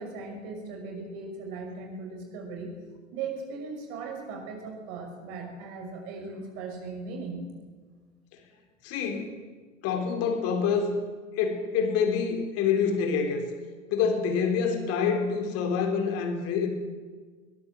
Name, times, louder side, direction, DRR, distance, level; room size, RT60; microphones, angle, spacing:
voice 1, 0.0-2.8 3.1-7.5, right 4 dB, 45° right, 2 dB, 5.8 m, -38 dB
voice 2, 8.8-9.3 9.8-10.9 11.4-13.5 13.9-16.7, left 6 dB, 40° left, 6 dB, 4.2 m, -26 dB
21.5 x 20.0 x 7.6 m, 1.5 s
figure-of-eight pair, 90°, 37 cm